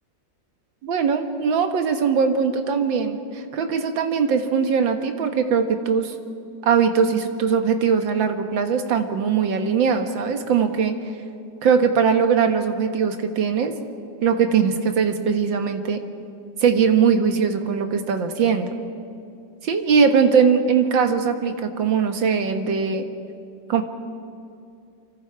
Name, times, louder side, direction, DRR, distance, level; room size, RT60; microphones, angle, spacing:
voice 1, 0.8-6.2 6.6-10.9 11.6-13.7 14.2-16.0 16.6-18.7 19.6-23.1 23.7-23.8, right 6 dB, 75° right, 6 dB, 2.1 m, -20 dB
28.5 x 24.5 x 4.7 m, 2.5 s
omnidirectional pair, 2.1 m